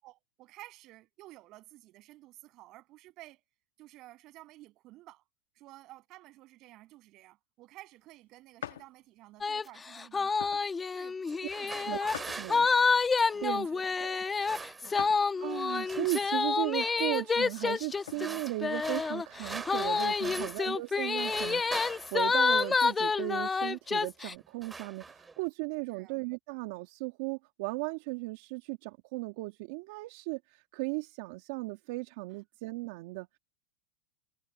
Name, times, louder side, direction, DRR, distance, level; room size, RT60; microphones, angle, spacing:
voice 1, 0.0-3.4 3.8-5.2 5.6-10.3 10.9-12.1 12.5-12.7 13.3-13.6 14.3-14.4 14.8-15.1 20.2-20.5 25.9-26.2, right 17 dB, 45° right, 7.1 m, -53 dB
sound 1, 8.6-8.9 9.5-9.7 10.4-10.7 12.1-12.9 15.0-15.3 15.8-15.9 17.5-18.2, left 11 dB, 85° left, 1.5 m, -43 dB
sound 2, 9.4-9.6 10.0-24.3, left 4 dB, 15° left, 1.2 m, -29 dB
sound 3, 11.3-13.5 14.2-15.2 15.4-16.4 16.8-17.2 17.9-20.7 21.0-23.1 23.9-24.1 24.4-25.5, right 4 dB, 15° right, 3.2 m, -43 dB
voice 2, 12.4-12.7 13.4-13.7 14.0-14.2 15.4-33.4, right 24 dB, 65° right, 2.2 m, -36 dB
hypercardioid pair, 115°, 0 cm